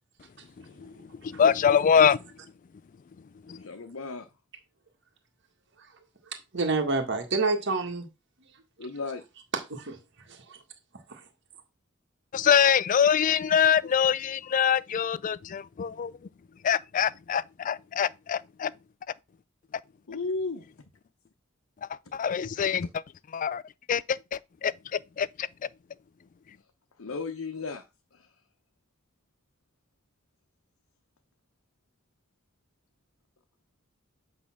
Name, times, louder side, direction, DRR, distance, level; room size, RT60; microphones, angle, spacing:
voice 1, 0.6-2.2 3.5-3.7 12.3-16.1 16.6-18.7 21.8-22.9 23.3-23.6 23.9-25.5, left 8 dB, 40° left, 0.3 m, -25 dB
voice 2, 3.6-4.3 8.8-9.2 20.1-20.7 27.0-27.8 28.1-28.3, left 3 dB, 80° left, 0.9 m, -34 dB
voice 3, 6.5-8.1 9.7-10.0 10.3-10.6 11.1-11.2, right 3 dB, 60° right, 1.7 m, -28 dB
8.5 x 3.5 x 5.9 m
head